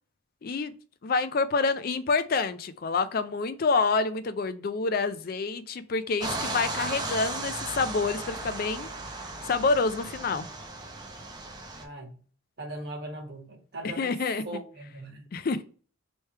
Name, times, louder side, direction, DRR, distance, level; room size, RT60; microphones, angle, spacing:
voice 1, 0.4-0.8 1.0-8.9 9.4-10.5 14.0-14.4 15.3-15.6, left 4 dB, 45° left, 0.4 m, -27 dB
sound 1, 6.2-11.8, right 2 dB, 20° right, 0.6 m, -36 dB
voice 2, 10.1-10.5 11.8-12.2 12.6-14.1 14.4-15.3, right 1 dB, 55° right, 1.3 m, -40 dB
3.2 x 3.1 x 4.4 m
head